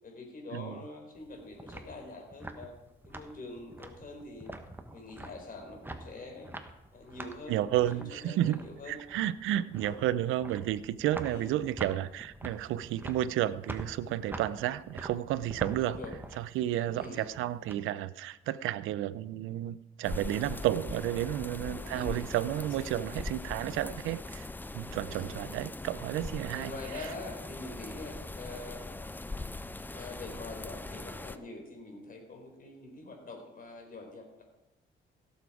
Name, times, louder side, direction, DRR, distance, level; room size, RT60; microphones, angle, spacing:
voice 1, 0.0-2.7 3.0-4.5 4.9-6.5 6.9-9.0 9.7-10.1 11.2-11.5 15.8-16.2 16.9-17.3 21.6-22.3 22.6-23.1 25.1-25.4 26.5-29.0 29.9-34.4, left 2 dB, 45° left, 2 dB, 4.0 m, -45 dB
sound 1, 1.1-17.7, right 1 dB, 10° right, 1.2 m, -46 dB
voice 2, 7.5-8.6 8.9-16.0 16.4-24.5 24.7-26.7 27.0-27.1, right 13 dB, 90° right, 17 dB, 0.5 m, -32 dB
sound 2, 20.0-31.4, left 2 dB, 10° left, 0.5 m, -41 dB
16.5 x 7.3 x 4.9 m, 0.90 s
cardioid pair, 90°, 20 cm